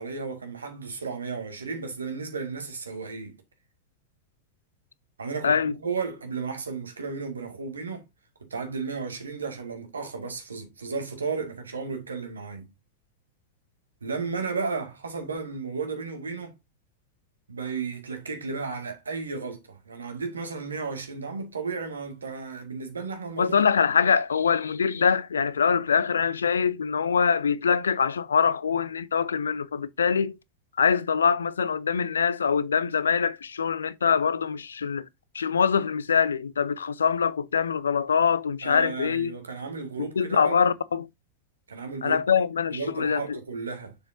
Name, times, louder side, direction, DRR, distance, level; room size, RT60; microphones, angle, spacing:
voice 1, 0.0-3.4 5.2-8.0 8.4-12.7 14.0-16.5 17.5-23.5 38.6-40.7 41.7-42.2 42.7-44.0, right 4 dB, 75° right, 2.0 m, -34 dB
voice 2, 5.4-5.8 23.4-30.4 30.8-35.1 35.3-39.3 40.0-41.1 42.0-43.4, left 6 dB, 70° left, 0.5 m, -24 dB
7.3 x 6.4 x 2.6 m
figure-of-eight pair, 90°, 0 cm